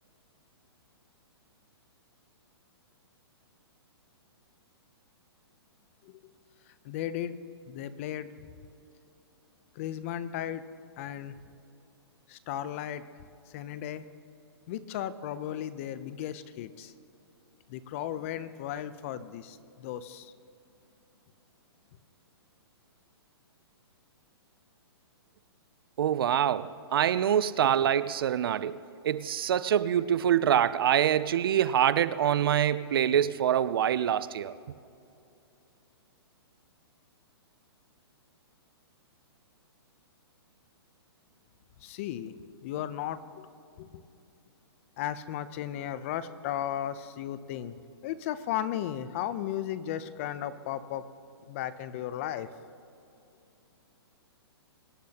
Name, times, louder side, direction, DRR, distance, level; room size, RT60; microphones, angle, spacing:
voice 1, 6.8-7.3 7.7-8.3 9.8-10.6 11.0-11.4 12.3-13.0 13.5-14.0 14.7-16.9 17.7-20.3 41.8-42.3 42.6-43.5 43.8-44.0 45.0-47.7 48.0-51.0 51.5-52.5, left 11 dB, 30° left, 0.6 m, -35 dB
voice 2, 26.0-34.5, right 10 dB, 60° right, 0.4 m, -25 dB
24.0 x 10.5 x 2.9 m
hypercardioid pair, 160°, 14 cm